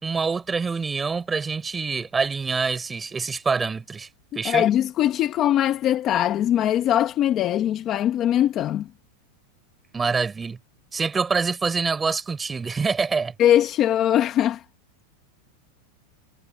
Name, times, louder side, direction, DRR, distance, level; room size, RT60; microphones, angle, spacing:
voice 1, 0.0-4.1 4.4-4.6 9.9-10.6 10.9-13.3, right 5 dB, 10° right, 3.9 m, -25 dB
voice 2, 4.4-8.9 13.4-14.6, left 11 dB, 25° left, 1.0 m, -21 dB
supercardioid pair, 170°, 0 cm